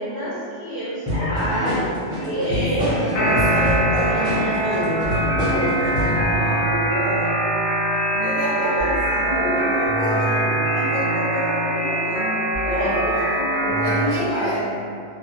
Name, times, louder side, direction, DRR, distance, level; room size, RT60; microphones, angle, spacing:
voice 1, 0.0-1.9 2.2-3.4 8.5-8.8 12.7-13.1 13.6-14.7, right 1 dB, 40° right, -14 dB, 0.5 m, -27 dB
sound 1, 1.1-6.2, left 1 dB, 5° right, 0.8 m, -25 dB
voice 2, 2.4-7.3 8.2-12.3 12.6-13.5 13.8-14.7, equal, 45° left, -14 dB, 1.4 m, -28 dB
sound 2, 3.1-14.0, right 1 dB, 75° left, 1.1 m, -22 dB
2.9 x 2.3 x 2.6 m, 2.4 s
omnidirectional pair, 1.2 m